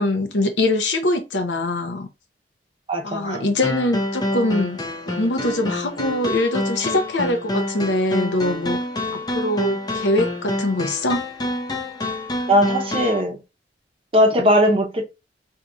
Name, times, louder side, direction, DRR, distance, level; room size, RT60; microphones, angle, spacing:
voice 1, 0.0-2.1 3.0-4.8 5.1-8.8 9.1-11.2, left 1 dB, 90° left, 0.7 m, -23 dB
voice 2, 2.9-3.4 12.5-13.4 14.1-15.0, equal, 30° right, 0.6 m, -18 dB
sound 1, 3.6-13.2, left 1 dB, 25° left, 0.5 m, -27 dB
2.7 x 2.4 x 3.7 m
head